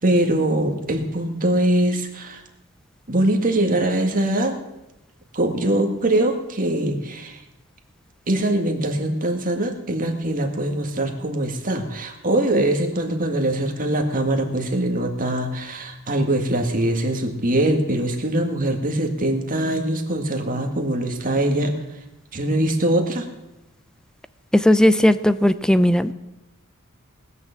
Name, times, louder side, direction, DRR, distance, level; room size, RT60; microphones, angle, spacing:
voice 1, 0.0-2.4 3.1-4.6 5.3-7.4 8.3-21.7 22.3-23.3, right 1 dB, 40° right, 3 dB, 1.9 m, -22 dB
voice 2, 24.5-26.1, left 1 dB, 5° left, 14 dB, 0.5 m, -16 dB
19.5 x 6.8 x 7.2 m, 0.94 s
head